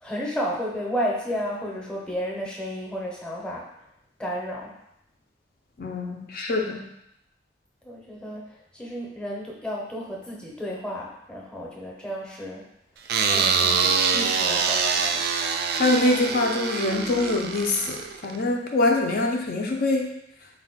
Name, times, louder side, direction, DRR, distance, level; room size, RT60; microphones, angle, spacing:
voice 1, 0.0-3.7 4.2-4.7 7.8-8.5 8.7-12.6 13.3-15.2, equal, 5° left, -3 dB, 0.7 m, -32 dB
voice 2, 5.8-6.9 15.8-20.1, left 2 dB, 55° left, 1 dB, 0.4 m, -24 dB
sound 1, 13.1-18.4, right 5 dB, 60° right, 0.3 m, -24 dB
4.2 x 2.2 x 3.9 m, 0.81 s
head